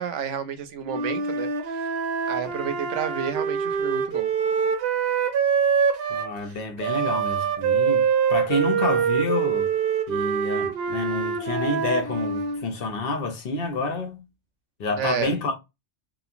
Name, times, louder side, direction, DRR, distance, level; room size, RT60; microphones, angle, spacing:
voice 1, 0.0-1.8 2.3-4.3 15.0-15.3, right 8 dB, 90° right, 0.9 m, -30 dB
Wind instrument woodwind instrument, 0.9-6.3 6.8-12.7, right 6 dB, 60° right, 0.7 m, -25 dB
voice 2, 6.1-9.7 10.1-14.3 14.8-15.5, left 3 dB, 60° left, 0.8 m, -28 dB
3.0 x 2.2 x 2.4 m
omnidirectional pair, 1.2 m